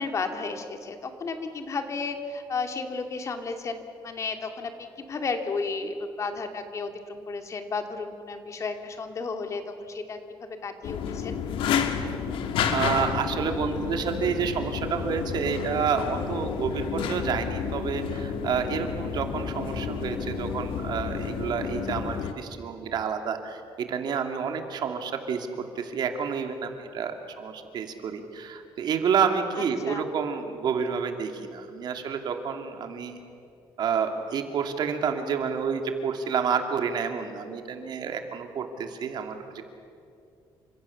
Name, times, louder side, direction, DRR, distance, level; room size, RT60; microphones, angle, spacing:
voice 1, 0.0-11.4 21.6-21.9 29.6-30.1, left 4 dB, 35° left, 5 dB, 2.4 m, -33 dB
sound 1, 10.8-22.3, left 7 dB, 85° left, 2.2 m, -30 dB
voice 2, 12.7-25.5 25.8-33.2 33.8-39.6, right 6 dB, 55° right, 5 dB, 2.6 m, -29 dB
30.0 x 26.5 x 7.1 m, 2.5 s
cardioid pair, 155°, 9 cm